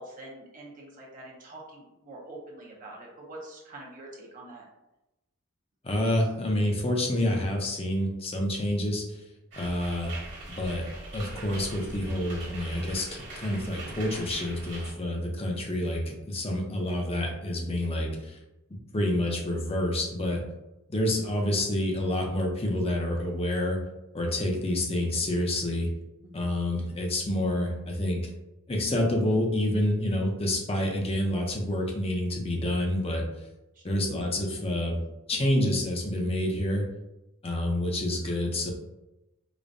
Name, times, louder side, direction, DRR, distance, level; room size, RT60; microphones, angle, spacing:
voice 1, 0.0-4.7 26.2-26.5 33.7-33.8, right 1 dB, 40° right, -2 dB, 0.6 m, -45 dB
voice 2, 5.8-9.0 9.6-10.1 10.5-10.9 11.1-18.4 18.9-20.4 20.9-23.8 24.1-25.9 26.3-28.2 28.7-33.2 33.8-35.0 35.3-36.9 37.4-38.7, left 1 dB, 30° left, 0 dB, 0.6 m, -28 dB
sound 1, 9.5-14.9, right 2 dB, 60° right, 1.4 m, -42 dB
4.9 x 2.2 x 2.6 m, 0.96 s
head